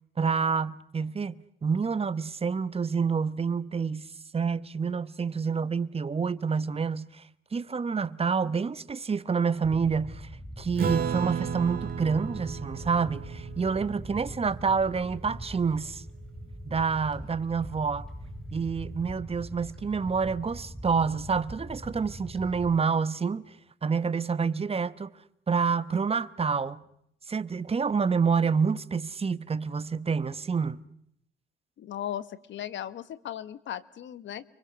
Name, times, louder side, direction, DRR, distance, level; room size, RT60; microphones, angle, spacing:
voice 1, 0.2-1.3 1.6-4.1 4.3-7.2 7.5-10.3 10.6-16.0 16.6-18.1 18.5-23.4 23.8-25.1 25.5-26.8 27.3-30.8, right 5 dB, 30° right, 1.1 m, -28 dB
sound 1, 9.6-22.8, equal, 5° left, 3.7 m, -42 dB
Acoustic guitar / Strum, 10.8-15.6, right 7 dB, 50° right, 2.3 m, -34 dB
voice 2, 31.8-34.4, left 11 dB, 70° left, 1.3 m, -37 dB
29.5 x 23.5 x 6.3 m
cardioid pair, 90°, 20 cm